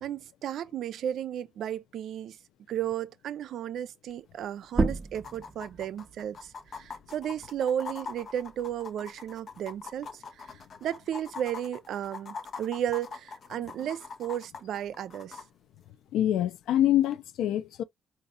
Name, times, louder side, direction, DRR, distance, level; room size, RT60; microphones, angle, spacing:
voice 1, 0.0-2.4 2.7-15.4, right 10 dB, 75° right, 0.4 m, -34 dB
sound 1, 4.1-4.2 4.4-4.5 5.1-15.4 17.1-17.2, left 5 dB, 50° left, 0.8 m, -43 dB
sound 2, 4.7-9.9 10.3-12.1, right 3 dB, 20° right, 0.5 m, -35 dB
voice 2, 16.1-17.8, left 12 dB, 85° left, 0.4 m, -25 dB
4.1 x 2.5 x 2.5 m
cardioid pair, 90°, 0 cm